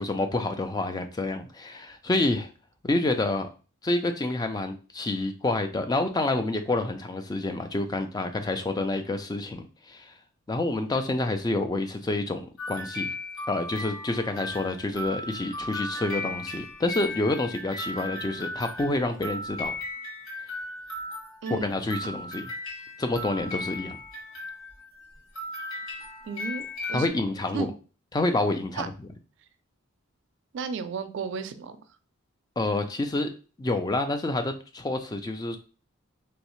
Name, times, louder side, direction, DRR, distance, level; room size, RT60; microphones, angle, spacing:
voice 1, 0.0-2.5 2.8-3.5 3.8-10.2 10.5-12.4 12.7-13.1 13.5-19.7 21.5-22.5 23.0-24.0 26.9-27.7 28.1-29.1 32.6-33.3 33.6-35.6, left 2 dB, 20° left, 0.3 m, -28 dB
sound 1, 12.6-25.1 25.3-27.1, left 1 dB, 65° left, 1.4 m, -36 dB
voice 2, 21.4-21.7 26.3-27.2 27.5-27.7 28.8-28.9 30.5-31.8, right 5 dB, 55° right, 0.3 m, -33 dB
3.1 x 2.7 x 3.0 m
head